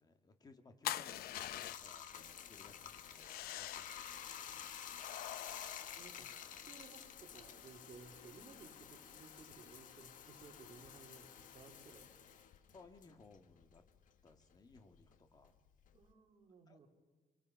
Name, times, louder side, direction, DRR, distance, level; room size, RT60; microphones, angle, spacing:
voice 1, 0.0-4.7 12.7-13.8 14.2-15.5 16.7-16.8, left 3 dB, 25° left, 7 dB, 1.9 m, -62 dB
sound 1, 0.8-2.1 3.1-4.1 5.0-6.6, left 13 dB, 80° left, 0.7 m, -45 dB
Bathtub (filling or washing), 1.1-14.0 14.3-16.1, left 9 dB, 60° left, 1.5 m, -51 dB
voice 2, 6.0-12.4 15.9-16.9, right 5 dB, 40° right, 2 dB, 3.5 m, -59 dB
29.0 x 24.5 x 5.6 m, 1.3 s
cardioid pair, 160°, 15 cm